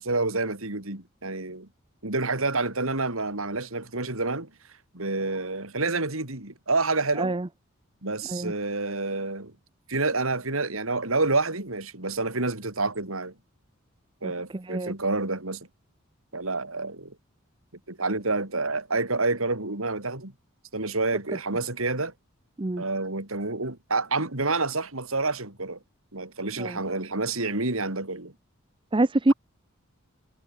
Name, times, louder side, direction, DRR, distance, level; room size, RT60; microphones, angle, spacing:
voice 1, 0.0-1.7 2.0-4.5 4.9-7.3 8.0-9.5 9.9-13.3 14.2-15.7 16.3-17.2 17.9-20.3 20.7-22.1 22.8-25.8 26.1-28.3, right 3 dB, 75° right, 3.9 m, -28 dB
voice 2, 7.2-7.5 8.3-8.5 14.2-14.9 22.6-22.8 26.6-26.8 28.9-29.3, right 2 dB, 25° right, 0.6 m, -26 dB
head